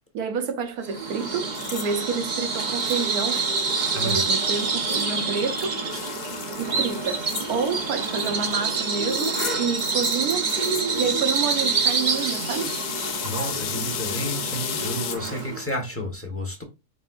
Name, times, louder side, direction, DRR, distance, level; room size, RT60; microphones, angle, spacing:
voice 1, 0.1-3.5 4.0-5.8 6.6-7.2 7.5-10.5 11.0-12.7, right 5 dB, 70° right, 1.2 m, -28 dB
Bird vocalization bird call bird song, 0.8-15.6, right 4 dB, 35° right, 0.8 m, -27 dB
sound 1, 1.5-2.1 2.8-3.1 3.4-15.7, left 7 dB, 60° left, 0.6 m, -39 dB
voice 2, 3.9-4.2 13.2-16.6, equal, 10° left, 1.0 m, -31 dB
sound 2, 5.9-8.9 10.7-15.1, left 9 dB, 75° left, 1.1 m, -35 dB
5.4 x 3.5 x 2.4 m
omnidirectional pair, 1.7 m